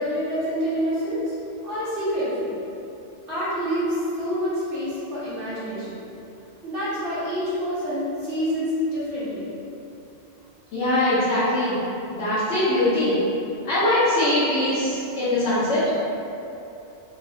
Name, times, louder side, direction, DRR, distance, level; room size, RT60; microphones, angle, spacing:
voice 1, 0.0-1.3 1.6-2.7 3.3-6.0 6.6-9.5, equal, 80° right, -14 dB, 1.9 m, -27 dB
voice 2, 10.7-11.8 12.1-13.1 13.6-15.8, left 1 dB, 80° left, -14 dB, 1.2 m, -22 dB
4.6 x 2.0 x 2.6 m, 2.8 s
omnidirectional pair, 1.2 m